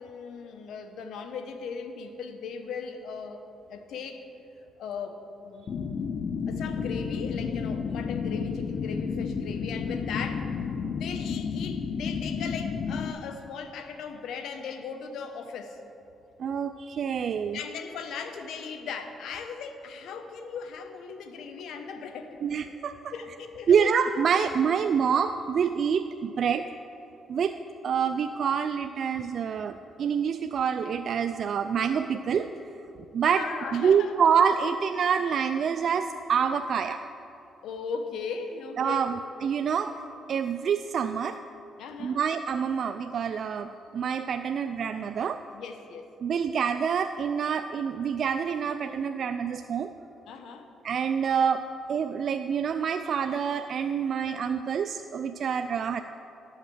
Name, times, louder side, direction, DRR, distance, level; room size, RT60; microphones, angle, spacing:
voice 1, 0.0-3.4 3.7-4.3 4.8-5.9 6.5-10.5 10.9-15.8 17.5-22.4 23.1-23.9 33.2-34.1 37.6-39.1 41.8-42.2 45.5-46.1 50.3-50.7, left 5 dB, 80° left, 7 dB, 0.9 m, -38 dB
sound 1, 5.7-13.1, left 6 dB, 55° left, 0.5 m, -31 dB
voice 2, 16.4-17.6 22.4-23.1 23.7-26.6 27.3-27.5 27.8-32.5 33.1-33.4 33.7-37.0 38.8-39.9 40.3-41.4 42.0-45.4 46.2-49.9 50.8-51.6 51.9-56.0, right 7 dB, 60° right, 8 dB, 0.3 m, -26 dB
11.0 x 5.7 x 7.7 m, 2.9 s
cardioid pair, 90°, 0 cm